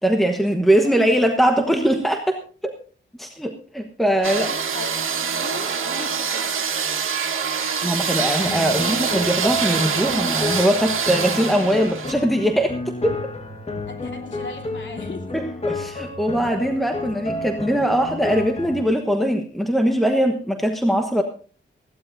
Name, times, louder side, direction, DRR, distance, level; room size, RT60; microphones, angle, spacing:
voice 1, 0.0-2.7 3.2-4.5 7.8-13.3 15.3-21.2, equal, ahead, 4 dB, 1.2 m, -21 dB
voice 2, 4.2-6.7 13.8-15.4 17.0-17.2, left 2 dB, 65° left, 3 dB, 2.9 m, -38 dB
sound 1, 4.2-12.1, right 6 dB, 85° right, 1.9 m, -25 dB
sound 2, 8.4-18.9, left 2 dB, 30° left, 1.5 m, -31 dB
20.5 x 15.5 x 2.6 m, 0.40 s
wide cardioid pair, 120°, 20 cm